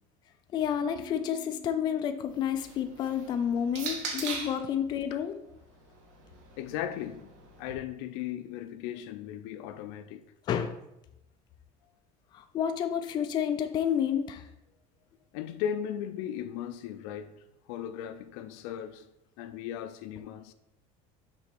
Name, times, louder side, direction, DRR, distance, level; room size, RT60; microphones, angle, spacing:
voice 1, 0.5-5.4 10.5-10.8 12.3-14.4, left 8 dB, 30° left, 0.4 m, -30 dB
sound 1, 0.8-4.4, right 2 dB, 50° right, 2.1 m, -52 dB
sound 2, 2.2-4.7 5.6-7.7, right 5 dB, 80° right, 1.5 m, -41 dB
voice 2, 6.6-7.3 7.6-10.2 15.3-17.3 17.7-19.1 19.4-20.5, left 10 dB, 75° left, 0.6 m, -37 dB
6.1 x 4.1 x 5.9 m
cardioid pair, 170°, 16 cm